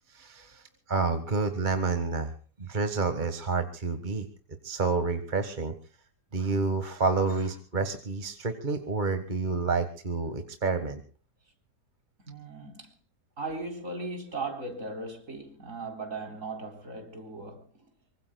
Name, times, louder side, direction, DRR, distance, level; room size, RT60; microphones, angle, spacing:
voice 1, 0.1-0.6 0.9-2.3 2.6-4.3 4.6-5.7 6.3-11.0, right 4 dB, 30° right, 1.6 m, -29 dB
voice 2, 12.2-13.0 13.4-17.9, right 3 dB, 50° right, 4.4 m, -38 dB
25.0 x 24.0 x 2.3 m
omnidirectional pair, 1.7 m